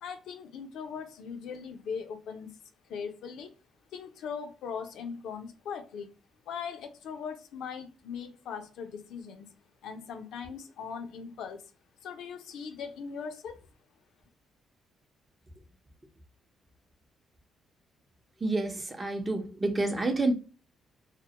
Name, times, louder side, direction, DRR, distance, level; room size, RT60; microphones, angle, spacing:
voice 1, 0.0-2.6 2.9-3.5 3.9-6.1 6.5-9.5 9.8-11.6 12.0-13.6, left 6 dB, 80° left, 0.4 m, -40 dB
voice 2, 18.4-20.3, right 2 dB, 25° right, 0.6 m, -28 dB
2.2 x 2.1 x 2.8 m
cardioid pair, 90°, 0 cm